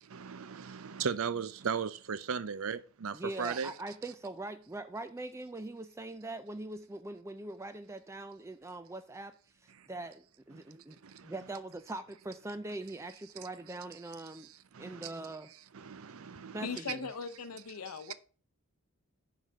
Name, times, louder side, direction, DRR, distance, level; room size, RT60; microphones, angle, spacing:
voice 1, 0.0-3.7 9.8-9.9 10.5-10.6 11.0-11.3 14.3-15.1 15.7-16.8, right 6 dB, 70° right, 0.5 m, -37 dB
voice 2, 3.1-11.0 11.2-14.5 14.8-15.5 16.5-17.1, right 2 dB, 15° right, 0.3 m, -42 dB
voice 3, 16.6-18.1, left 5 dB, 90° left, 0.6 m, -39 dB
7.6 x 4.8 x 5.4 m
head